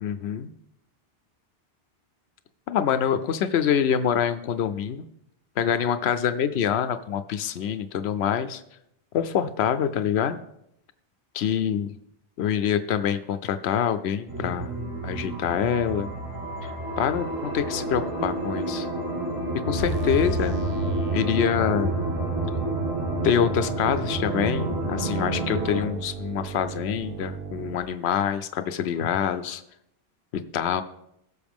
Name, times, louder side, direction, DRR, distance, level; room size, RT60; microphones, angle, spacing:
voice 1, 0.0-0.5 2.7-5.1 5.6-8.6 9.1-10.4 11.3-11.9 12.4-14.8 15.0-16.1 16.6-18.9 19.5-20.6 21.1-21.9 23.2-29.6 30.3-30.8, left 8 dB, 85° left, 11 dB, 0.9 m, -25 dB
sound 1, 14.3-25.8, right 1 dB, 25° right, 5.2 m, -29 dB
sound 2, 19.8-27.8, right 6 dB, 65° right, 1.0 m, -36 dB
16.5 x 6.7 x 3.5 m, 0.79 s
omnidirectional pair, 1.1 m